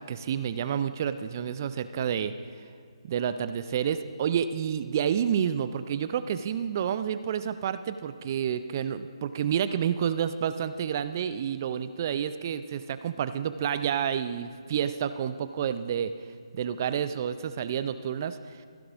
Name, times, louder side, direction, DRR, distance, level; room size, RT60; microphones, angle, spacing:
voice 1, 0.0-2.3 3.0-16.1 16.5-18.6, right 8 dB, 35° right, 12 dB, 0.3 m, -29 dB
15.5 x 10.0 x 2.4 m, 2.2 s
figure-of-eight pair, 150°, 3 cm